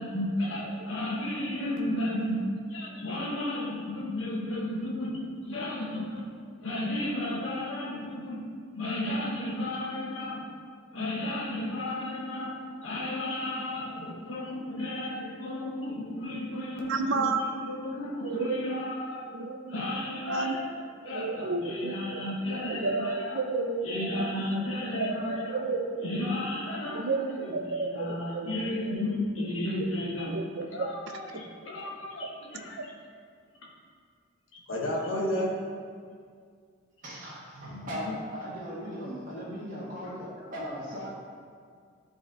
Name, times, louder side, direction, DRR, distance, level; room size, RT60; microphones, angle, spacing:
voice 1, 0.0-6.2 6.6-8.4 8.7-10.5 10.9-19.3 19.7-23.4 23.8-25.6 26.0-30.4 30.7-32.8 34.5-35.6 37.7-38.1 38.7-38.8 40.0-40.8, left 1 dB, 80° left, -3 dB, 1.3 m, -33 dB
voice 2, 16.9-17.4 18.2-18.7 19.3-20.6 21.0-22.3 22.6-24.5 24.9-26.2 26.9-28.5 28.9-29.0 29.8-29.9 30.3-30.9 32.2-32.4, right 3 dB, 70° right, 6 dB, 0.5 m, -32 dB
voice 3, 37.0-41.1, equal, 40° right, -8 dB, 1.7 m, -38 dB
11.0 x 4.2 x 4.1 m, 2.1 s
head